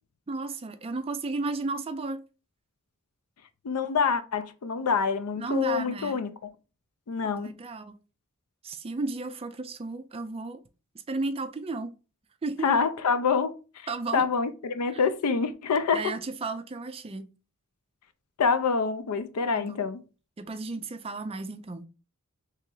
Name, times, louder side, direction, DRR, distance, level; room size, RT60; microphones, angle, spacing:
voice 1, 0.3-2.2 5.4-6.2 7.4-7.9 8.6-10.6 11.1-11.9 12.4-12.7 13.9-14.3 14.9-15.0 15.9-17.3 19.5-19.8 20.4-21.9, right 3 dB, 25° right, 0.4 m, -33 dB
voice 2, 3.6-6.3 7.1-7.5 12.6-16.1 18.4-20.0, left 5 dB, 85° left, 0.5 m, -26 dB
3.1 x 2.8 x 3.7 m
head